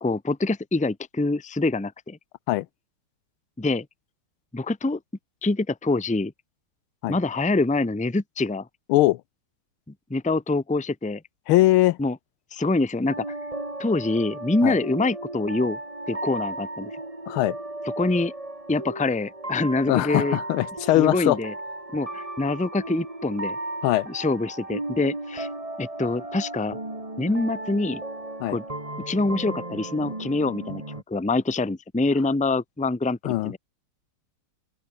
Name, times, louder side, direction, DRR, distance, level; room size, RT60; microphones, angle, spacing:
voice 1, 0.0-2.2 3.6-3.9 4.5-5.0 5.4-6.3 7.1-8.7 10.1-11.2 12.0-12.2 12.5-13.4 13.8-15.8 16.1-16.9 17.8-18.3 18.7-20.4 20.9-21.5 21.9-23.6 24.1-25.5 25.8-26.8 27.2-28.0 28.5-28.6 29.1-33.6, left 2 dB, 5° left, 0.8 m, -25 dB
voice 2, 8.9-9.2 11.5-12.0 14.6-14.7 17.3-17.6 19.9-21.4 23.8-24.1 28.4-28.6 33.2-33.5, left 16 dB, 85° left, 1.5 m, -21 dB
sound 1, 13.1-31.0, right 2 dB, 15° right, 3.1 m, -35 dB
open air
omnidirectional pair, 2.3 m